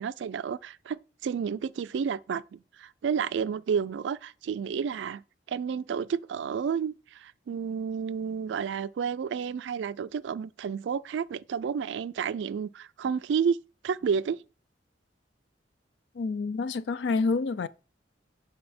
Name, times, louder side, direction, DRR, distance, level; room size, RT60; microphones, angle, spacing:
voice 1, 0.0-5.2 5.5-13.6 13.8-14.4, right 6 dB, 75° right, 0.3 m, -31 dB
voice 2, 16.1-17.7, left 4 dB, 70° left, 0.4 m, -28 dB
7.6 x 4.3 x 4.2 m
head